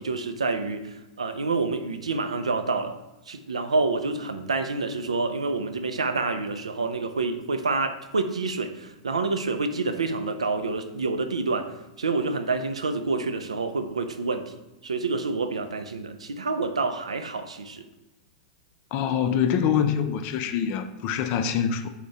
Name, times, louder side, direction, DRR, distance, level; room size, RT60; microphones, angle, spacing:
voice 1, 0.0-3.0 3.3-14.5 14.8-17.9, right 3 dB, 90° right, 9 dB, 0.3 m, -28 dB
voice 2, 18.9-21.9, left 8 dB, 45° left, 8 dB, 0.3 m, -25 dB
3.4 x 2.1 x 3.8 m, 1.0 s
hypercardioid pair, 105°, 3 cm